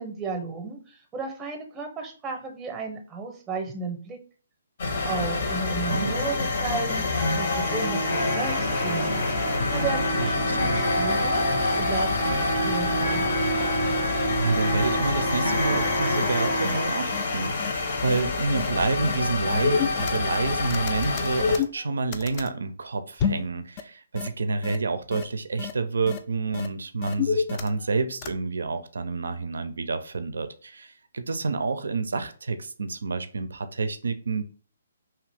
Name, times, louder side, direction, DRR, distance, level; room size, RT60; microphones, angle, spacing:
voice 1, 0.0-4.2 5.0-9.2 9.7-13.3, right 4 dB, 15° right, 0.7 m, -34 dB
sound 1, 4.8-21.6, left 3 dB, 60° left, 0.7 m, -28 dB
voice 2, 5.8-6.2 10.2-10.3 10.6-10.8 14.4-34.4, right 3 dB, 75° right, 0.4 m, -29 dB
sound 2, 6.9-16.8, right 1 dB, 80° left, 1.2 m, -28 dB
sound 3, 16.2-16.3 16.6-16.8 17.1-17.2 17.6-17.7 18.1-18.2 18.5-18.7 19.0-19.1 19.5-20.4 20.7-22.5 23.2-23.5 23.8-23.9 24.2-24.3 24.6-24.8 25.1-25.2 25.6-25.7 26.1-26.2 26.5-26.7 27.0-27.9 28.2-28.3, left 6 dB, 35° left, 0.3 m, -28 dB
2.8 x 2.4 x 3.3 m
hypercardioid pair, 145°, 0 cm